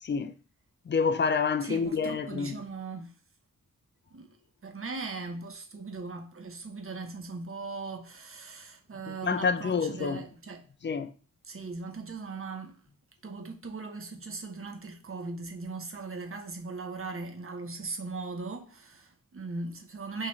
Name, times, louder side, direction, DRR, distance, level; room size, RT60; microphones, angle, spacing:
voice 1, 0.0-0.3 0.9-2.6 9.1-10.2 10.8-11.1, left 5 dB, 35° left, 0.4 m, -28 dB
voice 2, 1.6-3.1 4.1-4.3 4.6-10.7 11.4-12.8 13.2-20.3, right 3 dB, 40° right, 0.7 m, -39 dB
4.2 x 2.4 x 3.0 m
cardioid pair, 50°, 35 cm